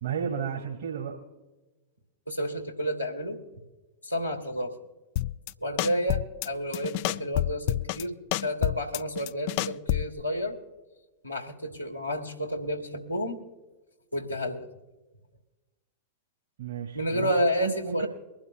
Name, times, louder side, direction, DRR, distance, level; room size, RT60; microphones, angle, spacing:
voice 1, 0.0-1.2 16.6-18.1, right 7 dB, 60° right, -1 dB, 1.9 m, -33 dB
voice 2, 2.3-3.4 4.0-4.8 5.6-8.1 8.4-10.6 11.2-13.4 14.1-14.7 16.9-18.1, equal, 85° left, 0 dB, 1.4 m, -30 dB
sound 1, 5.2-5.5 5.8-6.5 6.7-8.0 8.3-10.2, left 15 dB, 50° left, 0.3 m, -28 dB
23.5 x 12.0 x 2.4 m, 1.1 s
figure-of-eight pair, 90°, 0 cm